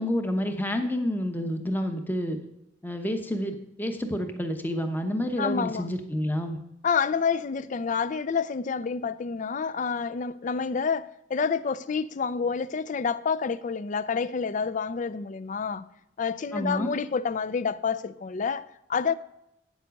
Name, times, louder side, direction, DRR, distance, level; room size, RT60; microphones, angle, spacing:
voice 1, 0.0-2.4 2.8-6.6 16.5-16.9, equal, 10° left, 0.8 m, -29 dB
voice 2, 5.4-5.9 6.8-15.8 16.2-19.1, left 5 dB, 40° left, 0.4 m, -28 dB
9.1 x 7.3 x 5.2 m
head